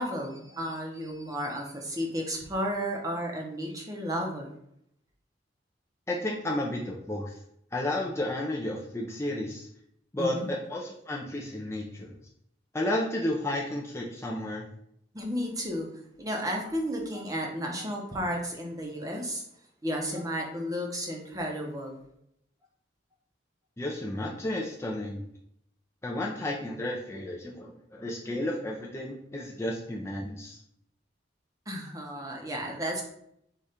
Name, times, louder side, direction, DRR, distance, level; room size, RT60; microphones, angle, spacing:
voice 1, 0.0-4.5 10.2-10.5 15.1-15.9 16.2-19.4 19.8-22.0 31.7-33.0, equal, 20° right, 0 dB, 0.7 m, -33 dB
voice 2, 6.1-7.4 7.7-9.7 10.1-12.1 12.7-14.7 23.8-25.3 26.0-30.6, left 1 dB, 15° left, -3 dB, 0.5 m, -32 dB
5.0 x 2.4 x 4.2 m, 0.74 s
head